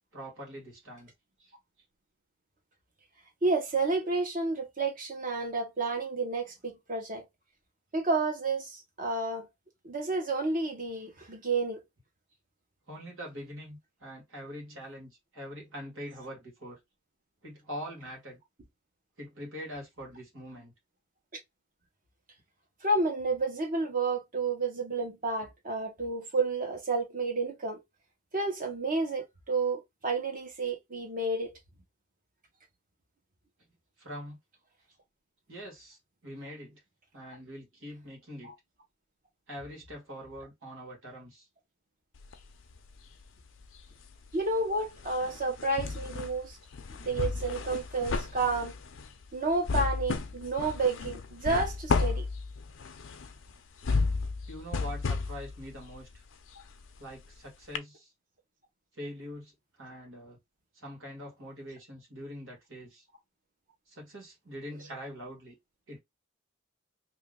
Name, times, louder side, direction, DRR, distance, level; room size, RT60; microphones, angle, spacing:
voice 1, 0.1-1.1 1.4-1.5 12.9-16.8 17.4-18.4 19.2-20.7 34.0-34.4 35.5-36.8 37.1-38.5 39.5-41.5 52.9-53.1 54.5-56.2 57.0-58.1 58.9-59.5 59.8-60.4 60.7-63.1 63.9-65.5 65.9-66.0, equal, 80° right, 1.8 m, -43 dB
voice 2, 3.4-7.2 7.9-9.5 9.8-11.8 22.8-27.8 28.3-31.6 44.3-46.6 47.0-48.7 49.3-52.3, right 3 dB, 45° right, 1.1 m, -30 dB
sound 1, 42.1-43.3 43.6-57.3 57.7-57.8, left 4 dB, 75° left, 0.5 m, -33 dB
2.9 x 2.7 x 3.7 m
head